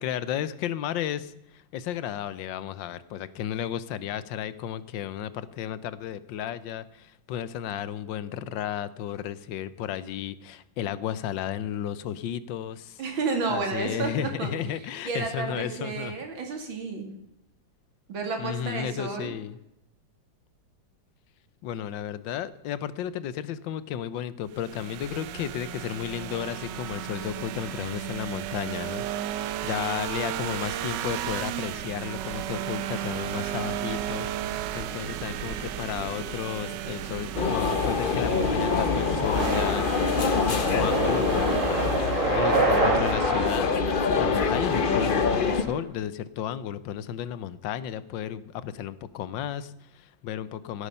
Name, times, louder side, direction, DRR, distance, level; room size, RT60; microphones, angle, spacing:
voice 1, 0.0-13.0 13.5-16.1 18.4-19.6 21.6-41.8 42.2-50.9, left 10 dB, 75° left, 16 dB, 1.4 m, -33 dB
voice 2, 13.0-17.1 18.1-19.3, right 4 dB, 90° right, 4 dB, 3.1 m, -31 dB
sound 1, 24.5-42.4, right 11 dB, 70° right, 1.3 m, -34 dB
sound 2, 34.8-45.8, right 4 dB, 40° right, 2.3 m, -31 dB
sound 3, 37.3-45.6, left 5 dB, 45° left, 0.7 m, -25 dB
16.5 x 8.4 x 5.5 m, 0.83 s
omnidirectional pair, 2.1 m